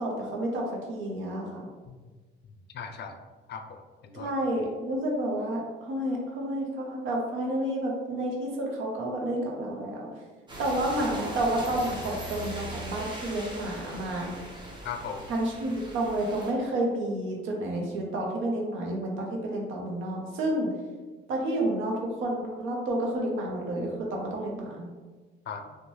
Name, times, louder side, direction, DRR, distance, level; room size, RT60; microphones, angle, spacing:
voice 1, 0.0-1.7 4.1-10.1 10.6-14.3 15.3-20.7 21.3-24.9, right 1 dB, 85° right, -1 dB, 0.7 m, -30 dB
voice 2, 2.7-3.2 3.5-4.3 14.8-15.3 25.5-25.8, left 6 dB, 60° left, 6 dB, 0.4 m, -38 dB
sound 1, 10.5-16.5, right 1 dB, 20° right, 0.7 m, -39 dB
2.7 x 2.2 x 3.0 m, 1.4 s
cardioid pair, 90°, 20 cm